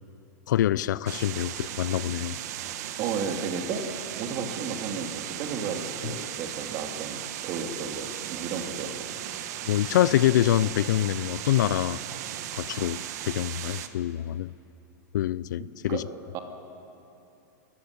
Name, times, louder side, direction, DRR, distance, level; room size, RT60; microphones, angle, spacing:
voice 1, 0.5-2.4 6.0-6.1 9.7-12.0 12.5-14.5 15.1-16.1, left 12 dB, 75° left, 19 dB, 0.6 m, -25 dB
sound 1, 1.1-13.9, right 11 dB, 60° right, 1.5 m, -36 dB
voice 2, 3.0-3.9 4.2-9.1 15.9-16.0 16.3-16.4, right 5 dB, 35° right, 4 dB, 2.6 m, -33 dB
28.5 x 14.0 x 9.8 m, 2.8 s
supercardioid pair, 150°, 10 cm